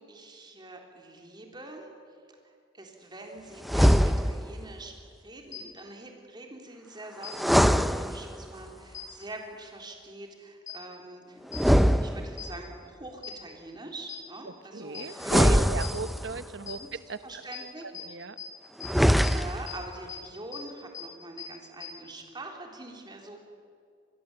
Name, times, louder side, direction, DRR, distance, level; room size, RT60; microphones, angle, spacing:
voice 1, 0.0-1.9 2.3-4.9 5.2-11.4 11.7-15.6 16.8-16.9 17.2-18.1 19.3-23.4, right 2 dB, 25° right, 2 dB, 3.5 m, -44 dB
sound 1, 3.6-4.6 7.3-8.6 11.5-12.7 15.2-16.4 18.8-19.8, equal, ahead, 0.6 m, -23 dB
sound 2, 5.5-5.6 7.2-7.3 8.9-9.0 10.7-10.8 11.5-11.6 12.4-12.5 13.2-13.3 14.1-14.2 14.9-15.0 15.8-15.9 16.7-16.8 17.5-17.6 17.9-18.0 18.4-18.5 18.8-18.9 19.2-19.3 19.7-19.8 20.1-20.2 20.5-20.6 20.9-21.0 21.4-21.5 21.8-21.9, left 11 dB, 45° left, 7.5 m, -39 dB
voice 2, 14.4-16.8 17.1-17.4 17.8-18.4, right 4 dB, 75° right, 13 dB, 1.1 m, -36 dB
25.5 x 21.5 x 7.9 m, 2.4 s
head